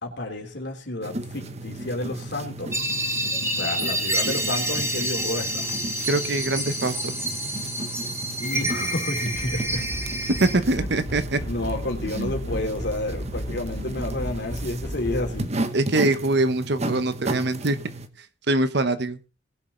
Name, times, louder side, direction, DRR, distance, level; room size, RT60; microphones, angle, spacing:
voice 1, 0.0-2.8 3.5-5.7 8.4-9.9 10.8-10.9 11.5-15.6, left 1 dB, 65° left, 2 dB, 3.4 m, -30 dB
sound 1, 1.0-18.1, right 2 dB, 35° right, 1.1 m, -35 dB
sound 2, 2.7-10.5, right 1 dB, 15° right, 3.8 m, -28 dB
voice 2, 6.1-7.1 10.4-11.4 12.2-12.3 15.7-17.8 18.5-19.2, right 2 dB, 65° right, 12 dB, 1.1 m, -23 dB
sound 3, 9.3-15.4, equal, 20° left, 2.0 m, -34 dB
20.0 x 7.1 x 3.9 m, 0.33 s
head